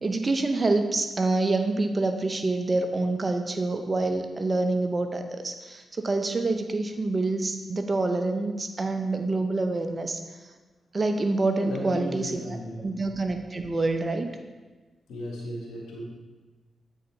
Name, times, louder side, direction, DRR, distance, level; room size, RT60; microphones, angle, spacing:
voice 1, 0.0-10.2 10.9-14.3, right 2 dB, 40° right, 6 dB, 0.8 m, -27 dB
voice 2, 11.6-12.9 15.1-16.0, left 1 dB, 90° left, -3 dB, 1.5 m, -35 dB
8.3 x 4.0 x 4.5 m, 1.3 s
supercardioid pair, 50°, 0 cm